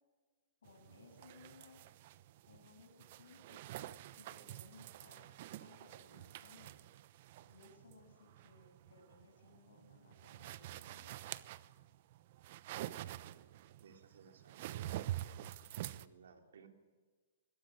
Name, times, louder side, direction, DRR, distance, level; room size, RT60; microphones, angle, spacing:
voice 1, 0.6-1.8 2.5-3.6 4.2-5.3 5.6-6.8 7.4-11.2, left 3 dB, 90° left, 3 dB, 6.9 m, -62 dB
sound 1, 0.7-16.1, right 14 dB, 50° right, 0.9 m, -48 dB
voice 2, 13.8-15.1 15.6-16.7, right 6 dB, 80° right, 4 dB, 3.7 m, -59 dB
22.5 x 18.0 x 8.7 m, 1.4 s
hypercardioid pair, 140°, 0 cm